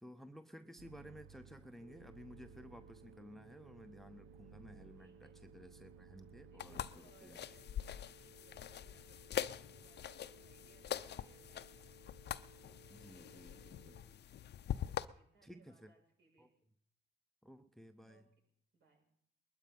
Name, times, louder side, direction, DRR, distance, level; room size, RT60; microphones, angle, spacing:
voice 1, 0.0-7.4 12.9-14.0 15.4-15.9 16.4-16.5 17.4-18.3, equal, ahead, 10 dB, 0.8 m, -55 dB
sound 1, 0.8-6.9, right 6 dB, 80° right, 0.8 m, -59 dB
Telephone, 1.8-14.0, right 4 dB, 35° right, 1.7 m, -63 dB
voice 2, 4.9-5.4 6.3-11.9 14.6-16.5 18.0-18.2 18.7-19.1, right 4 dB, 65° right, 0 dB, 8.0 m, -69 dB
sound 2, 6.6-15.1, left 10 dB, 60° left, 0.7 m, -44 dB
21.0 x 12.0 x 5.5 m, 0.68 s
cardioid pair, 90°, 20 cm